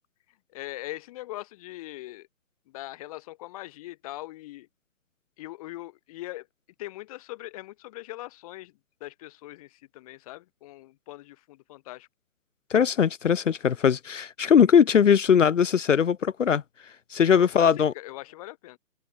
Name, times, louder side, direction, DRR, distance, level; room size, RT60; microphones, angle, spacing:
voice 1, 0.5-2.3 2.7-4.7 5.4-6.5 6.8-8.7 9.0-12.1 17.4-18.8, left 17 dB, 25° left, 4.1 m, -41 dB
voice 2, 12.7-16.6 17.1-17.9, left 7 dB, 55° left, 1.2 m, -20 dB
hypercardioid pair, 160°, 44 cm